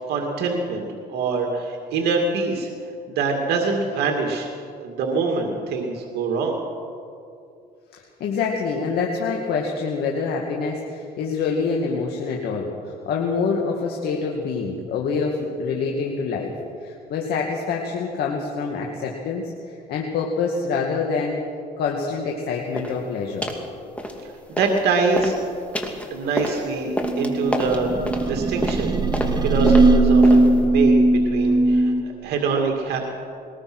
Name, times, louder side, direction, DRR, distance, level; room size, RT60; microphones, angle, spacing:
voice 1, 0.0-2.7 3.1-4.5 4.8-6.6 24.2-24.3 24.6-25.4 26.1-27.9 28.2-29.0 29.4-33.1, right 4 dB, 75° right, 1 dB, 2.3 m, -24 dB
voice 2, 8.2-16.5 16.8-21.4 21.8-23.5 30.6-30.7, left 5 dB, 70° left, 0 dB, 2.3 m, -26 dB
sound 1, 22.7-23.0 23.4-23.7 24.0-24.8 25.1-30.6, left 1 dB, 5° left, 2.7 m, -29 dB
sound 2, 27.0-32.0, right 2 dB, 25° right, 1.1 m, -18 dB
21.5 x 20.0 x 6.2 m, 2.5 s
cardioid pair, 110°, 17 cm